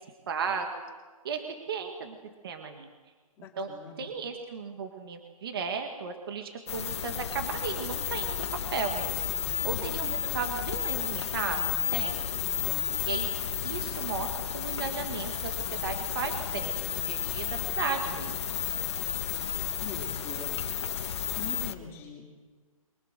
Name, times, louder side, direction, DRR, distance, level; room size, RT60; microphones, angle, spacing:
voice 1, 0.3-0.8 1.2-2.2 2.4-2.9 3.6-3.7 4.0-8.4 8.7-9.2 9.6-12.2 13.1-13.3 13.6-16.8 17.1-17.5 17.8-18.4, right 5 dB, 40° right, 5 dB, 1.9 m, -35 dB
voice 2, 3.4-4.1 12.6-13.1 19.8-20.5 21.4-22.4, left 5 dB, 15° left, -1 dB, 2.9 m, -43 dB
sound 1, 6.7-21.7, left 9 dB, 50° left, 1.6 m, -32 dB
27.5 x 24.0 x 6.7 m, 1.4 s
hypercardioid pair, 175°, 19 cm